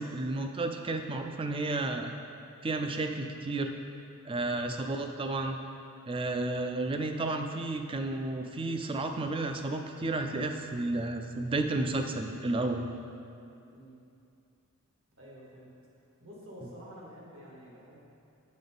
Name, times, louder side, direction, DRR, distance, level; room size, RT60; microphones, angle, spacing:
voice 1, 0.0-2.2 2.6-3.7 4.3-5.6 6.1-12.9 16.6-16.7, right 2 dB, 25° right, 5 dB, 0.3 m, -32 dB
voice 2, 15.2-15.7 16.2-18.0, equal, 65° right, -4 dB, 1.5 m, -49 dB
7.7 x 5.3 x 3.9 m, 2.6 s
head